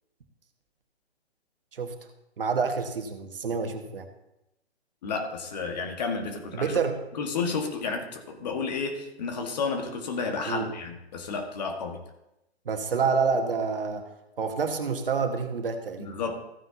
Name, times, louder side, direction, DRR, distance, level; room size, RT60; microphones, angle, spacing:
voice 1, 2.4-4.1 6.5-7.0 10.5-10.7 12.6-14.1 14.4-16.1, right 5 dB, 55° right, 5 dB, 1.6 m, -28 dB
voice 2, 5.0-6.7 7.1-12.0 16.0-16.4, left 4 dB, 40° left, 4 dB, 1.6 m, -31 dB
15.0 x 9.3 x 2.8 m, 0.89 s
figure-of-eight pair, 130°, 33 cm